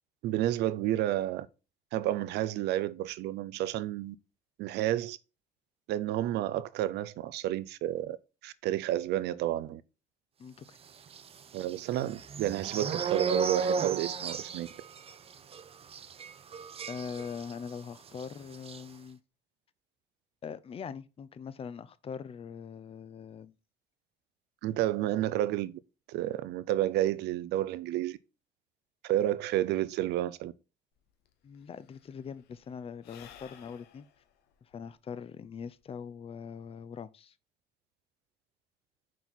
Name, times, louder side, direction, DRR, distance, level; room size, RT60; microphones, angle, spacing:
voice 1, 0.2-1.5 1.9-4.1 4.6-5.2 5.9-8.2 8.4-9.8 11.5-14.7 24.6-25.8 26.1-28.2 29.0-30.5, right 13 dB, 80° right, 0.6 m, -30 dB
voice 2, 10.4-10.8 16.9-19.2 20.4-23.6 31.4-34.1 34.6-37.3, left 6 dB, 35° left, 0.6 m, -42 dB
sound 1, 11.1-17.8 18.1-18.3 18.5-18.8, right 5 dB, 35° right, 0.6 m, -35 dB
Sigh / Breathing, 31.0-31.1 31.3-36.0, left 9 dB, 80° left, 1.1 m, -56 dB
6.1 x 4.5 x 4.0 m
cardioid pair, 110°, 17 cm